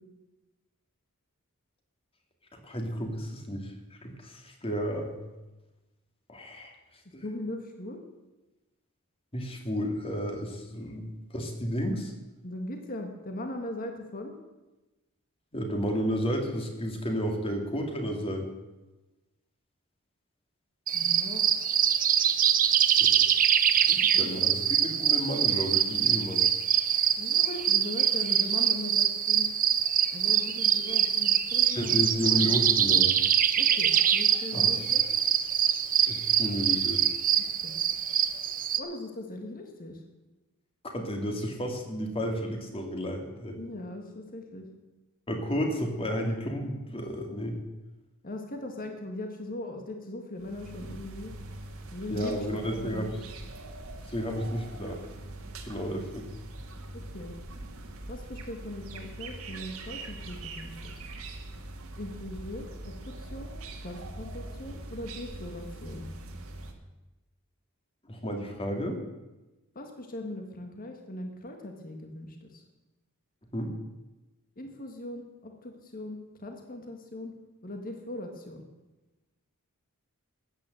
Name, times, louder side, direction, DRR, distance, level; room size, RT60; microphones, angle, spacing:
voice 1, 2.5-5.1 6.3-6.7 7.1-7.2 9.3-12.1 15.5-18.5 22.7-23.1 23.7-26.4 30.9-31.0 31.6-33.1 34.5-34.9 36.1-37.1 40.8-43.6 45.3-47.6 52.1-53.1 54.0-55.0 55.7-56.3 68.1-69.0 73.5-73.7, equal, 25° left, 3 dB, 2.3 m, -32 dB
voice 2, 7.2-8.0 12.4-14.3 20.9-21.5 24.1-24.3 27.2-29.5 30.1-32.0 33.5-35.0 37.4-37.7 38.8-40.0 43.6-44.6 48.2-51.3 51.9-53.2 56.9-57.4 58.1-61.1 62.0-66.0 69.7-72.6 74.6-77.3 77.6-78.7, left 1 dB, 40° left, 4 dB, 1.6 m, -40 dB
sound 1, 20.9-38.8, right 9 dB, 40° right, 0.8 m, -24 dB
sound 2, 50.4-66.7, right 2 dB, 75° right, 1.9 m, -42 dB
14.0 x 9.0 x 7.7 m, 1.1 s
head